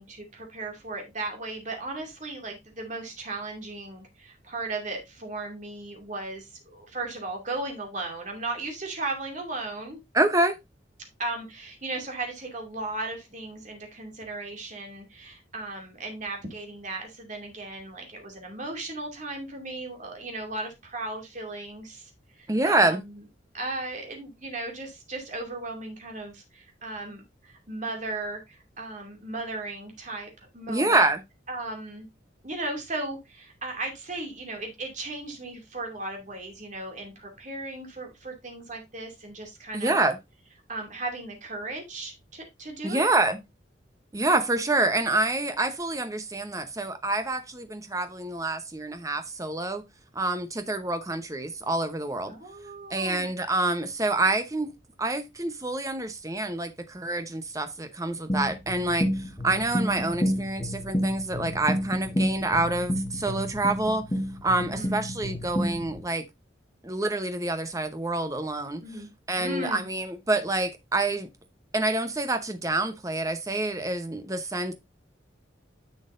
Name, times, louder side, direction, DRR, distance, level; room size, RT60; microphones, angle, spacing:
voice 1, 0.0-10.0 11.2-22.1 22.3-23.1 23.5-31.0 31.5-32.1 32.4-40.0 40.7-43.1 52.3-53.3 64.6-64.9 68.8-69.1 69.4-69.9, right 2 dB, 40° right, 2.5 m, -36 dB
voice 2, 10.1-10.6 22.5-23.0 30.7-31.2 39.7-40.2 42.8-43.4 44.1-49.8 50.1-52.3 52.9-54.7 55.0-64.1 64.4-66.2 66.8-68.8 69.3-71.3 71.7-74.7, right 2 dB, 15° right, 0.9 m, -27 dB
sound 1, 58.3-66.0, equal, 20° left, 1.1 m, -30 dB
10.0 x 6.3 x 2.6 m
head